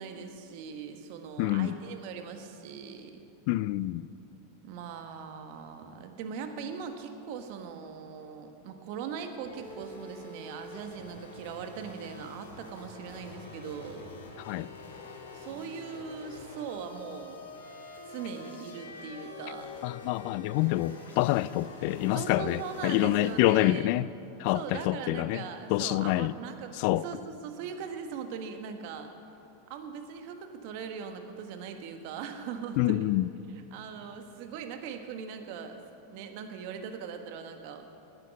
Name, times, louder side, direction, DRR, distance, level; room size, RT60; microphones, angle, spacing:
voice 1, 0.0-3.2 4.6-14.1 15.3-17.4 18.1-19.7 22.1-23.9 24.5-29.1 29.7-33.1 33.7-35.8 36.1-37.8, right 6 dB, 60° right, 1.3 m, -40 dB
voice 2, 1.4-1.7 3.5-4.0 14.4-14.7 19.8-24.1 24.4-25.4 25.7-26.3 26.8-27.0 32.8-33.3, left 16 dB, 60° left, 0.3 m, -27 dB
sound 1, 9.4-23.6, left 3 dB, 85° left, 2.1 m, -46 dB
10.0 x 9.8 x 7.5 m
hypercardioid pair, 100°, 0 cm